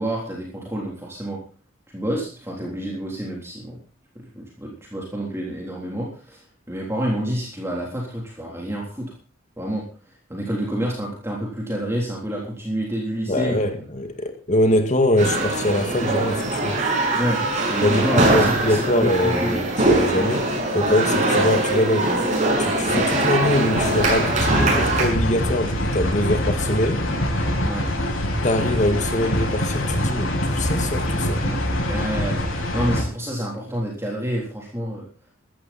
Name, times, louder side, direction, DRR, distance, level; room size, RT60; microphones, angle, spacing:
voice 1, 0.0-1.4 1.9-3.8 4.2-6.4 6.7-9.1 9.6-9.8 10.3-13.6 17.1-17.4 17.7-19.5 27.6-27.9 31.4-31.6 31.9-35.1, equal, 15° right, 3.6 m, -28 dB
voice 2, 13.3-16.8 17.8-22.1 22.6-27.1 28.4-31.4, left 1 dB, 40° left, 2.0 m, -23 dB
sound 1, 15.2-25.1, right 2 dB, 40° right, 7.0 m, -22 dB
sound 2, 23.7-33.0, left 1 dB, 85° left, 6.8 m, -24 dB
16.0 x 13.5 x 4.3 m
head